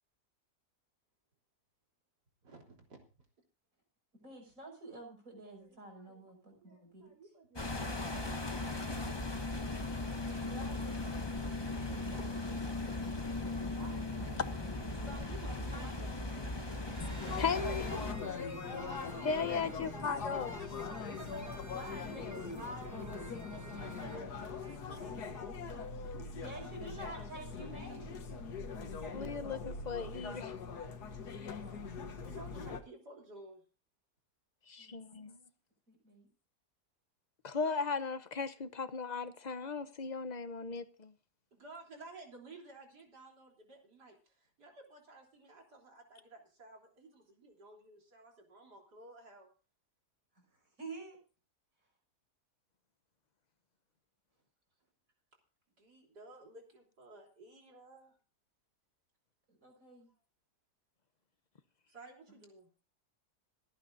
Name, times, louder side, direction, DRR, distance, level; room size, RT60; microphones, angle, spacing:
voice 1, 2.4-3.0 5.6-6.2 6.6-8.5 11.8-12.5 12.9-13.5 14.9-16.6 20.9-21.7 23.8-25.3 31.4-31.5 32.1-33.6 41.5-49.5 55.8-58.2 61.9-62.7, right 2 dB, 85° right, 4.1 m, -54 dB
voice 2, 4.1-7.1 10.3-11.7 13.7-14.8 15.7-15.9 16.4-16.5 18.6-19.2 21.6-23.4 26.4-28.1 31.7-32.6 34.8-35.3 35.9-36.3 50.5-51.2 59.5-60.1 62.3-62.4, right 1 dB, 55° right, 6.3 m, -50 dB
sound 1, 7.6-18.1, left 2 dB, 15° left, 1.4 m, -38 dB
sound 2, 16.9-24.2, right 2 dB, 25° right, 0.4 m, -49 dB
sound 3, 17.2-32.8, left 5 dB, 75° left, 1.9 m, -42 dB
voice 3, 17.4-18.0 19.2-20.5 29.1-30.5 31.3-31.6 34.7-35.4 37.4-41.1, left 5 dB, 35° left, 0.8 m, -37 dB
27.5 x 9.2 x 2.6 m
omnidirectional pair, 1.7 m